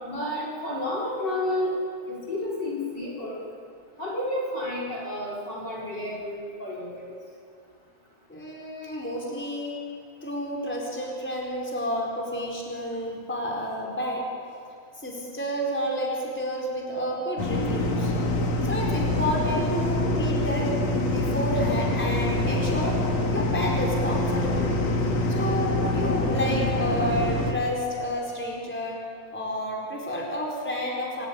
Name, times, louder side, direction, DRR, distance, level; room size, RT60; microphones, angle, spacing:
voice 1, 0.0-1.8 2.1-3.4 4.0-7.1, left 1 dB, 35° left, -3 dB, 4.2 m, -31 dB
voice 2, 8.3-9.7 10.2-14.3 15.0-18.1 18.6-20.7 21.0-23.0 23.3-24.8 25.3-29.0 29.3-31.3, equal, 5° left, -2 dB, 4.3 m, -30 dB
sound 1, 17.4-27.5, left 2 dB, 60° left, 3.1 m, -25 dB
26.0 x 14.0 x 9.6 m, 2.3 s
omnidirectional pair, 3.5 m